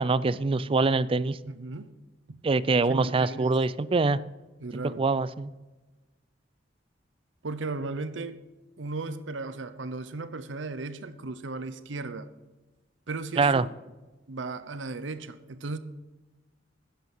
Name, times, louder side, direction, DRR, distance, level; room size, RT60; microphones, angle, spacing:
voice 1, 0.0-1.4 2.4-4.2 4.7-5.5 13.4-13.7, right 3 dB, 30° right, 0.4 m, -24 dB
voice 2, 1.5-1.9 2.3-2.4 2.9-3.6 4.6-5.0 7.4-8.4 8.8-12.3 13.1-13.6 14.3-15.8, right 3 dB, 90° right, 0.8 m, -36 dB
12.5 x 10.0 x 5.5 m
head